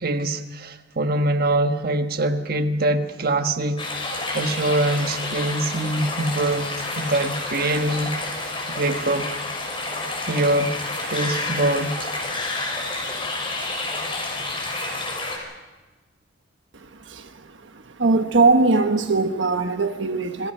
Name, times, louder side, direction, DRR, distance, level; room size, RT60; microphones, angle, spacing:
voice 1, 0.0-3.9 4.3-6.7 7.0-8.1 8.7-9.3 10.3-10.8 11.1-12.1, right 1 dB, 55° right, 1.3 m, -23 dB
sound 1, 3.8-15.4, left 2 dB, 30° left, 5.7 m, -29 dB
voice 2, 18.0-20.5, right 3 dB, 85° right, 1.2 m, -20 dB
27.0 x 23.0 x 5.7 m
head